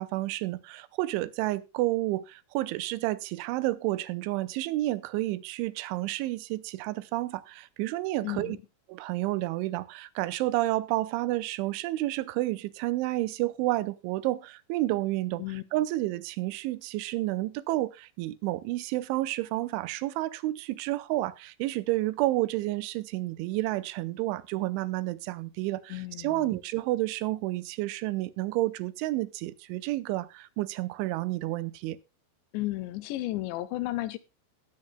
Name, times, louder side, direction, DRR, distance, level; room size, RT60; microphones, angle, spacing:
voice 1, 0.0-8.6 8.9-15.4 15.7-32.0, right 17 dB, 80° right, 3.1 m, -30 dB
voice 2, 8.2-8.6 15.4-15.6 25.9-26.6 32.5-34.2, left 17 dB, 80° left, 2.8 m, -33 dB
19.5 x 8.8 x 2.2 m
omnidirectional pair, 5.5 m